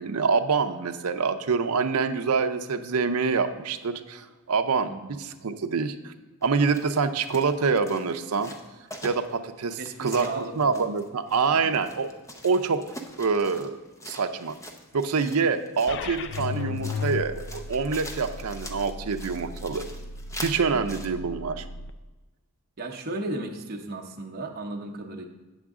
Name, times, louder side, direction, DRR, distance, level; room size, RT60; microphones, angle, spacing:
voice 1, 0.0-4.9 5.2-6.1 6.4-8.5 9.0-12.1 12.4-12.8 13.2-13.8 14.1-14.5 14.9-19.8 20.4-21.6, right 5 dB, 75° right, 8 dB, 0.6 m, -26 dB
sound 1, 6.4-21.1, left 1 dB, 15° left, 0.6 m, -44 dB
voice 2, 9.8-10.9 11.5-11.8 20.7-21.0 22.8-25.2, right 2 dB, 45° right, 0 dB, 0.8 m, -35 dB
sound 2, 15.9-21.9, left 4 dB, 55° left, 0.4 m, -36 dB
8.7 x 7.2 x 3.6 m, 1.2 s
head